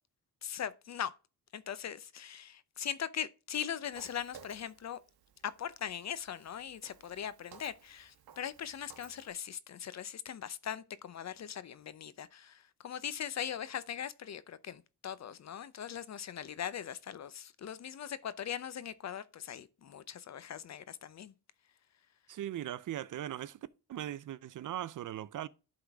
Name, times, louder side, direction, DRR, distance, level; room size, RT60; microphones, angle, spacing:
voice 1, 0.4-1.1 1.5-5.0 5.4-21.3, left 9 dB, 45° left, 0.6 m, -40 dB
Walk footsteps, 3.9-9.3, right 7 dB, 75° right, 1.2 m, -58 dB
voice 2, 22.3-23.6 23.9-25.5, right 12 dB, 55° right, 0.5 m, -39 dB
11.5 x 3.9 x 3.4 m
cardioid pair, 115°, 38 cm